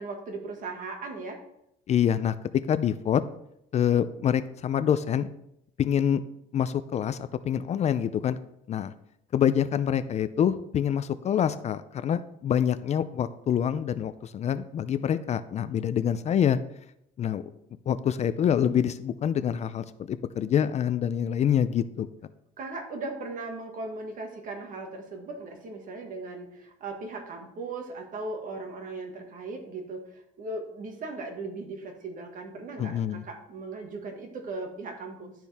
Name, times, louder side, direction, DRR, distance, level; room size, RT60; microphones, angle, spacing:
voice 1, 0.0-1.4 22.6-35.3, right 3 dB, 55° right, 3 dB, 1.8 m, -38 dB
voice 2, 1.9-2.3 2.7-3.2 3.7-5.3 5.8-6.2 6.5-8.4 8.7-8.9 9.3-16.6 17.2-17.4 17.9-22.1 32.8-33.2, left 9 dB, 40° left, 13 dB, 0.4 m, -26 dB
12.0 x 4.5 x 3.5 m, 0.78 s
cardioid pair, 110°, 17 cm